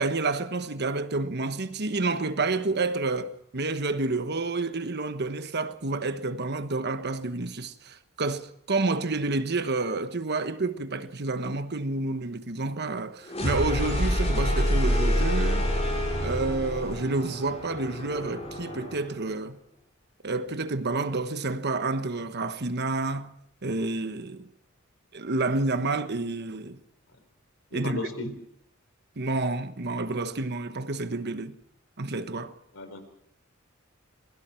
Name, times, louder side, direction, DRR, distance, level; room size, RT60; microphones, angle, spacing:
voice 1, 0.0-15.7 16.2-19.6 20.2-23.3 23.6-24.5 25.1-26.8 27.7-28.0 29.2-31.6 32.0-32.5, right 3 dB, 55° right, 1.2 m, -29 dB
sound 1, 13.3-19.1, equal, 30° left, 7.3 m, -27 dB
voice 2, 27.7-28.3 32.7-33.0, left 2 dB, 80° left, 4.4 m, -34 dB
27.5 x 21.0 x 4.6 m
head